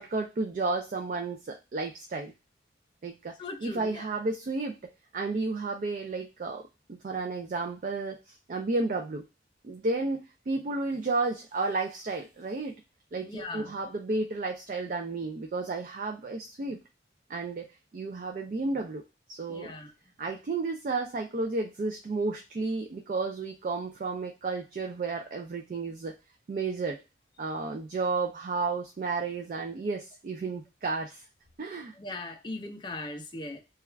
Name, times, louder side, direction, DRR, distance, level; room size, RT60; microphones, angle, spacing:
voice 1, 0.0-2.3 3.0-4.8 5.1-6.6 6.9-9.2 9.6-12.8 13.1-16.8 17.3-17.6 17.9-19.0 19.3-19.7 20.2-26.1 26.5-27.0 27.4-31.2 31.6-31.9, right 3 dB, 45° right, 3 dB, 0.3 m, -32 dB
voice 2, 3.4-4.1 13.3-13.7 19.5-19.9 32.0-33.6, left 2 dB, 25° left, 4 dB, 0.4 m, -39 dB
2.3 x 2.3 x 3.1 m, 0.28 s
head